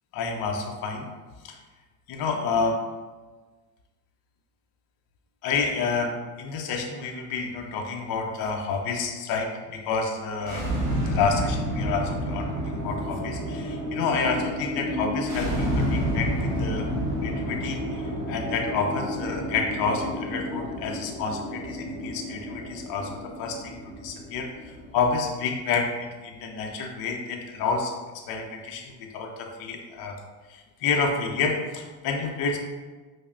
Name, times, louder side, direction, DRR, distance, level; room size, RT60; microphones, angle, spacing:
voice 1, 0.1-1.1 1.4-1.6 2.1-2.8 5.4-10.8 11.0-16.9 17.2-30.2 30.5-32.6, left 4 dB, 50° left, 2 dB, 0.5 m, -29 dB
sound 1, 10.4-25.3, equal, 50° right, 1.1 m, -30 dB
5.0 x 2.0 x 2.4 m, 1.3 s
supercardioid pair, 95°, 48 cm